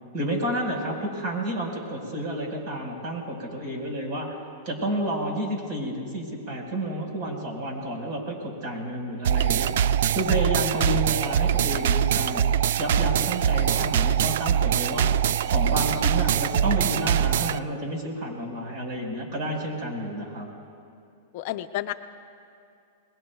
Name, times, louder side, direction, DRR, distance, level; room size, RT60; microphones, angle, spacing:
voice 1, 0.1-4.3 4.6-9.7 10.1-12.4 12.8-15.1 15.5-20.5, right 1 dB, 40° right, 0 dB, 4.8 m, -30 dB
sound 1, 9.2-17.6, right 9 dB, 70° right, 0.3 m, -23 dB
voice 2, 21.3-21.9, left 14 dB, 55° left, 8 dB, 0.6 m, -31 dB
27.5 x 21.0 x 2.3 m, 2.5 s
hypercardioid pair, 140°, 0 cm